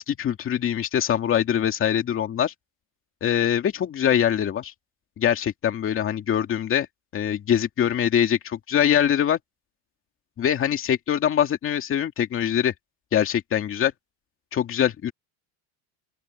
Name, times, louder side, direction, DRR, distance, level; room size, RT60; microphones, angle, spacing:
voice 1, 0.0-2.5 3.2-4.7 5.2-6.9 7.1-9.4 10.4-12.7 13.1-13.9 14.5-15.1, left 9 dB, 30° left, 2.3 m, -23 dB
open air
cardioid pair, 170°, 44 cm